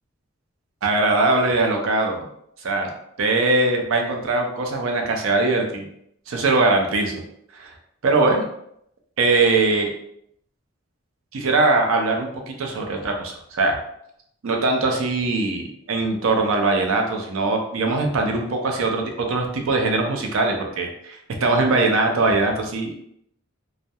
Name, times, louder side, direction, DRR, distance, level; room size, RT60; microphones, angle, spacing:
voice 1, 0.8-2.2 2.6-2.9 3.2-5.9 6.3-7.2 7.5-7.7 8.0-8.5 9.2-9.9 11.3-13.8 14.4-23.1, right 3 dB, 80° right, 3 dB, 0.5 m, -21 dB
2.2 x 2.1 x 2.7 m, 0.73 s
head